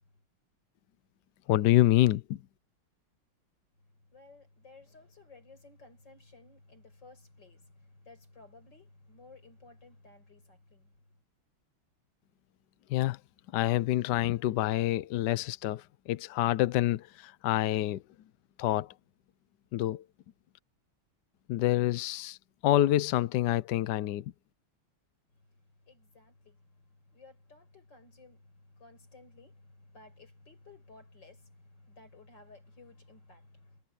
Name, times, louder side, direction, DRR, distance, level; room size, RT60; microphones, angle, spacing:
voice 1, 1.5-2.4 12.9-13.2 13.5-18.0 18.6-18.9 19.7-20.0 21.5-22.4 22.6-24.2, left 14 dB, 70° left, 1.0 m, -27 dB
voice 2, 4.1-10.9 25.9-33.8, left 3 dB, 55° left, 6.3 m, -56 dB
omnidirectional pair, 2.4 m